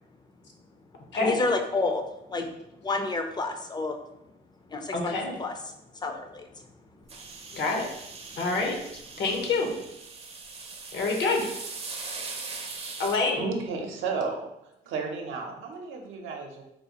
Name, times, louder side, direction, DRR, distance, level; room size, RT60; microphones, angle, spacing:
voice 1, 1.1-2.0 2.3-2.4 2.8-4.0 4.7-5.5 6.0-6.6, left 3 dB, 20° left, 5 dB, 0.4 m, -29 dB
voice 2, 4.9-5.3 7.5-7.8 8.4-8.7 9.2-9.7 10.9-11.5 13.0-13.4, left 3 dB, 65° left, 1 dB, 0.9 m, -26 dB
sound 1, 7.1-13.2, right 4 dB, 30° right, 0.5 m, -40 dB
voice 3, 13.4-16.6, right 4 dB, 90° right, 2 dB, 0.6 m, -33 dB
3.9 x 2.4 x 2.8 m, 0.85 s
cardioid pair, 90°, 20 cm